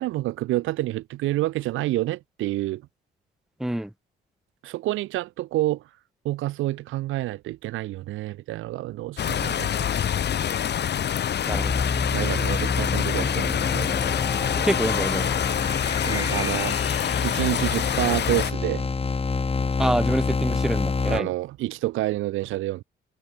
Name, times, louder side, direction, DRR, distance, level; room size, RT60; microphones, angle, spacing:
voice 1, 0.0-2.8 4.6-5.8 6.2-9.9 12.1-13.9 16.0-16.8 17.2-18.9 21.1-22.8, right 16 dB, 85° right, 0.9 m, -28 dB
voice 2, 3.6-3.9 11.5-11.8 14.6-15.3 19.8-21.3, right 1 dB, ahead, 0.7 m, -26 dB
sound 1, 9.2-18.5, left 9 dB, 60° left, 2.8 m, -26 dB
sound 2, 11.5-21.2, left 4 dB, 30° left, 3.6 m, -27 dB
cardioid pair, 90°, 20 cm